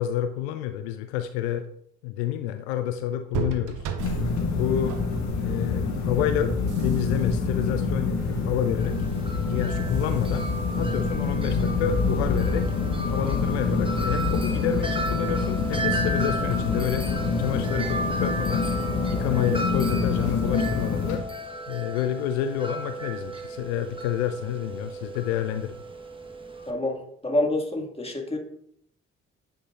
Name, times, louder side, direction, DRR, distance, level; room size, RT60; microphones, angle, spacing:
voice 1, 0.0-1.7 2.0-3.8 4.5-5.0 5.4-9.0 9.5-10.5 10.8-12.7 13.1-17.1 17.4-18.7 19.1-21.2 21.7-25.8, left 10 dB, 75° left, 9 dB, 0.5 m, -29 dB
sound 1, 3.3-19.0, right 5 dB, 65° right, 0.8 m, -39 dB
sound 2, 4.0-21.2, left 4 dB, 55° left, 1.7 m, -26 dB
Wind chime, 8.8-26.7, right 2 dB, 15° right, 1.2 m, -35 dB
voice 2, 26.7-28.4, left 1 dB, 15° left, 1 dB, 2.1 m, -27 dB
9.1 x 5.5 x 2.5 m, 0.67 s
figure-of-eight pair, 40°, 34 cm